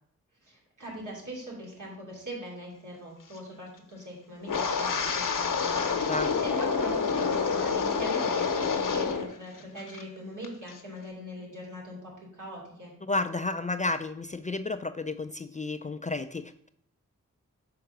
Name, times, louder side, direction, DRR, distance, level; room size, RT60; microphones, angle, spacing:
voice 1, 0.4-6.2 6.4-12.9, equal, 70° right, -4 dB, 2.8 m, -42 dB
Wind, 4.4-9.3 9.6-10.0 10.4-10.7, left 5 dB, 80° left, 0.9 m, -28 dB
voice 2, 13.0-16.7, left 3 dB, 25° left, 9 dB, 0.3 m, -32 dB
5.6 x 3.8 x 5.9 m, 0.67 s
cardioid pair, 55°, 32 cm